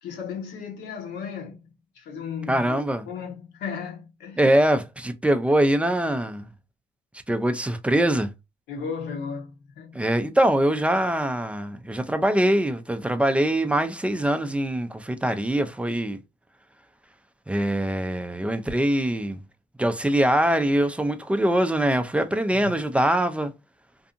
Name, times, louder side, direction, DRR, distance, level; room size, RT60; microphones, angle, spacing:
voice 1, 0.0-4.5 8.7-10.1 22.5-22.7, left 6 dB, 80° left, 1.0 m, -35 dB
voice 2, 2.5-3.1 4.4-6.5 7.3-8.3 9.9-16.2 17.5-19.4 19.8-23.5, right 1 dB, 5° right, 0.3 m, -23 dB
2.6 x 2.5 x 2.4 m
cardioid pair, 110°, 17 cm